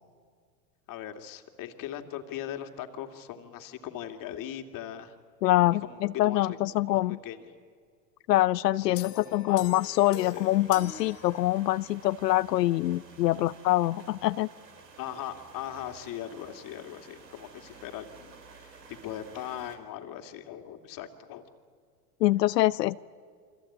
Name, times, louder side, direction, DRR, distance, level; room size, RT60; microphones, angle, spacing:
voice 1, 0.9-5.1 5.8-6.4 6.9-7.6 8.8-9.6 10.2-10.4 15.0-18.7 19.0-21.5, left 10 dB, 40° left, 6 dB, 2.3 m, -40 dB
voice 2, 5.4-7.2 8.3-14.5 22.2-23.0, left 16 dB, 80° left, 15 dB, 0.6 m, -25 dB
sound 1, 9.0-11.9, left 9 dB, 65° left, 2.8 m, -44 dB
sound 2, 9.8-19.8, right 5 dB, 85° right, 3.8 m, -52 dB
28.5 x 24.0 x 8.7 m, 2.1 s
hypercardioid pair, 95°, 48 cm